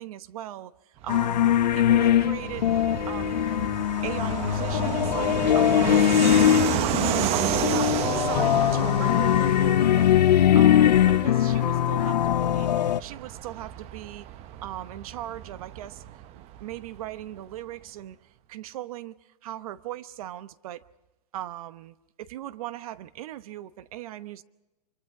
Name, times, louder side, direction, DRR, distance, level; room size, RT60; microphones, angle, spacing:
voice 1, 0.0-1.4 1.7-2.7 3.1-3.4 4.0-10.1 10.5-12.7 13.0-14.3 14.6-18.2 18.5-20.8 21.3-24.4, right 13 dB, 60° right, 1.0 m, -39 dB
Fixed-wing aircraft airplane, 1.0-17.2, right 12 dB, 30° right, 0.8 m, -32 dB
sound 1, 1.1-13.0, left 11 dB, 90° left, 0.6 m, -21 dB
25.0 x 24.5 x 4.9 m
hypercardioid pair, 140°, 21 cm